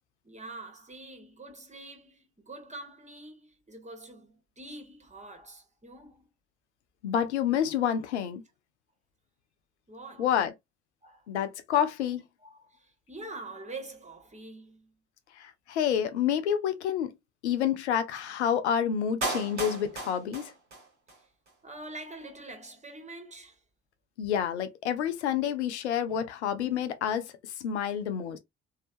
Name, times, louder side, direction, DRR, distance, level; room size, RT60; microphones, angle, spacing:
voice 1, 0.2-6.3 9.9-10.3 11.0-11.3 12.4-14.9 20.8-20.9 21.2-21.3 21.6-23.6 27.7-27.8, right 2 dB, 20° right, 1.4 m, -45 dB
voice 2, 7.0-8.4 10.2-10.5 11.3-12.2 15.3-17.1 17.4-20.5 24.2-28.4, left 9 dB, 80° left, 0.5 m, -28 dB
Clapping, 19.2-21.2 21.5-21.6, right 2 dB, 85° right, 0.8 m, -35 dB
3.2 x 2.7 x 2.5 m
figure-of-eight pair, 40°, 33 cm